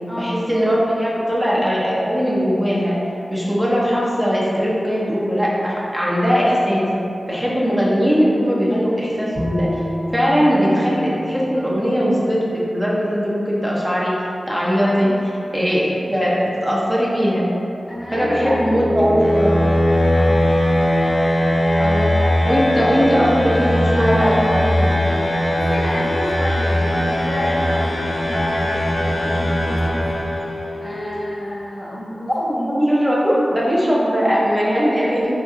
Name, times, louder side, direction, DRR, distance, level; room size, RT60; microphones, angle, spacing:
voice 1, 0.2-3.0 3.3-6.9 7.3-9.8 10.1-14.2 14.5-15.1 15.5-17.5 18.1-19.6 21.8-22.2 22.5-24.9 32.3-35.4, equal, 20° right, -5 dB, 0.6 m, -19 dB
Bowed string instrument, 9.3-12.6, equal, 50° right, 1.4 m, -29 dB
voice 2, 14.8-15.2 17.9-19.5 20.1-20.5 25.5-30.1 30.8-32.8, equal, 30° left, -5 dB, 0.8 m, -30 dB
sound 1, 18.0-30.8, left 1 dB, 50° left, 0.4 m, -20 dB
sound 2, 25.1-31.1, left 3 dB, 85° right, 0.7 m, -34 dB
3.5 x 2.8 x 2.4 m, 2.8 s
cardioid pair, 40°, 0 cm